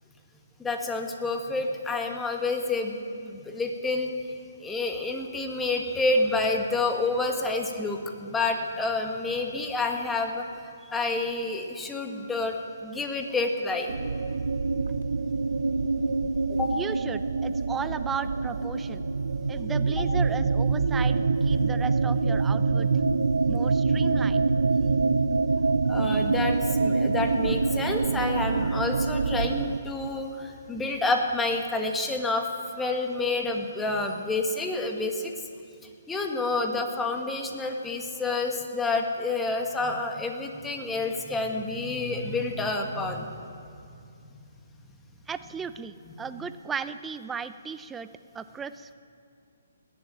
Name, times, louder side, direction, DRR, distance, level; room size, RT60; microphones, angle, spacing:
voice 1, 0.6-4.1 4.6-10.5 10.9-12.6 12.8-13.9 16.5-16.7 25.9-32.5 32.7-35.3 36.1-43.4, left 3 dB, 10° left, 3 dB, 1.4 m, -29 dB
sound 1, 13.9-29.8, right 4 dB, 80° right, 0.5 m, -25 dB
voice 2, 16.7-19.0 19.5-22.9 23.5-24.4 45.3-48.9, right 6 dB, 10° right, 12 dB, 0.4 m, -36 dB
19.5 x 7.2 x 9.2 m, 2.4 s
hypercardioid pair, 150°, 0 cm